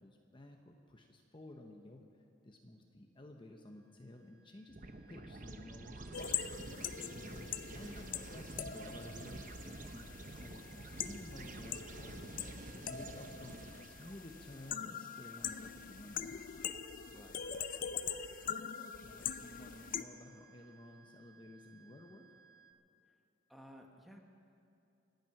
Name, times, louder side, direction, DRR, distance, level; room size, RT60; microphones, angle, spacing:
voice 1, 0.0-4.8 5.1-7.0 7.7-10.1 10.3-16.4 18.5-22.3, left 1 dB, 25° left, 3 dB, 0.9 m, -54 dB
sound 1, 3.6-22.7, right 6 dB, 70° left, 1.3 m, -64 dB
sound 2, 4.7-14.2, right 2 dB, 40° right, 0.9 m, -49 dB
sound 3, 6.1-20.0, left 8 dB, 45° left, 0.5 m, -43 dB
voice 2, 23.5-24.2, equal, ahead, 2 dB, 1.2 m, -55 dB
25.0 x 9.3 x 5.9 m, 2.6 s
head